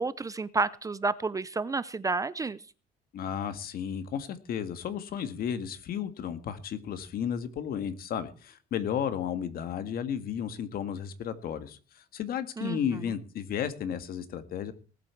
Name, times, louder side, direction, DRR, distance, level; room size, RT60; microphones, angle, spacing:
voice 1, 0.0-2.6 12.6-12.8, right 3 dB, 20° right, 17 dB, 0.6 m, -30 dB
voice 2, 3.1-14.7, left 8 dB, 60° left, 10 dB, 1.8 m, -33 dB
19.5 x 8.3 x 4.6 m, 0.38 s
cardioid pair, 110°, 17 cm